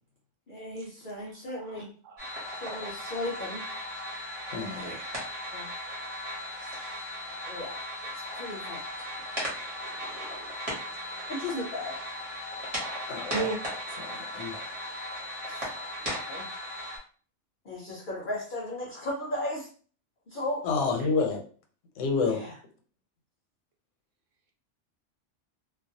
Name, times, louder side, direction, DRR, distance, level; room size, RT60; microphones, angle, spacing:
voice 1, 0.5-1.9 2.6-3.6 5.5-5.7 6.6-6.7 7.5-7.8 8.2-8.8 11.3-11.9 15.5-15.7 16.3-16.5 17.6-19.7 20.3-20.7 22.2-22.6, left 1 dB, 55° left, -3 dB, 0.6 m, -35 dB
voice 2, 1.6-2.2 2.6-2.8 4.8-5.1 6.5-7.1 9.8-10.6 10.9-11.5 13.3-13.6, right 4 dB, 75° right, 1 dB, 1.0 m, -39 dB
sound 1, 2.2-17.0, equal, 35° right, 0.9 m, -37 dB
voice 3, 4.5-4.9 13.1-13.5 14.1-14.5 20.6-21.4 22.0-22.4, left 4 dB, 85° left, 4 dB, 0.9 m, -28 dB
2.3 x 2.1 x 2.6 m, 0.42 s
omnidirectional pair, 1.3 m